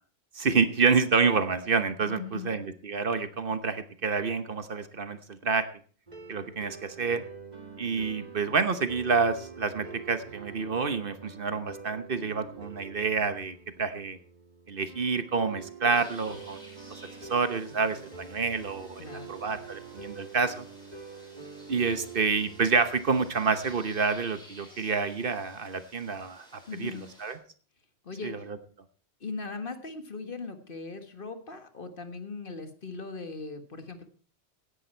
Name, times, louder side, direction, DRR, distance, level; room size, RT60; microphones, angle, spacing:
voice 1, 0.3-5.6 6.3-7.2 7.8-14.2 14.7-16.6 17.3-20.6 21.7-26.4 26.8-26.9 27.2-27.4 28.2-28.4, right 5 dB, 55° right, 11 dB, 1.2 m, -28 dB
voice 2, 2.0-2.6 19.0-19.4 26.7-27.1 28.0-28.5 29.2-34.0, left 4 dB, 55° left, 8 dB, 1.7 m, -39 dB
sound 1, 6.1-24.1, right 4 dB, 40° right, 2.3 m, -46 dB
sound 2, 15.9-27.3, equal, 5° left, 6.5 m, -54 dB
16.5 x 10.5 x 4.4 m, 0.43 s
omnidirectional pair, 1.1 m